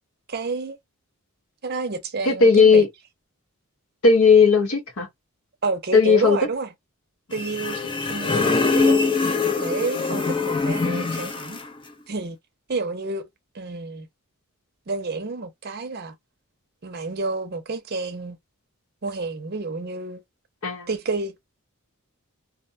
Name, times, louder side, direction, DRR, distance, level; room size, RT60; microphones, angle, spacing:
voice 1, 0.3-0.8 1.6-2.8 5.6-6.7 7.3-9.3 9.6-11.6 12.1-12.4 12.7-13.3 13.5-14.1 14.9-16.1 16.8-18.4 19.0-20.2 20.9-21.4, right 3 dB, 45° right, 0.6 m, -29 dB
voice 2, 2.2-2.9 4.0-5.1 5.9-6.4 20.6-20.9, left 5 dB, 65° left, 1.1 m, -16 dB
sound 1, 7.3-11.7, left 4 dB, 20° left, 0.4 m, -23 dB
2.5 x 2.2 x 2.5 m
head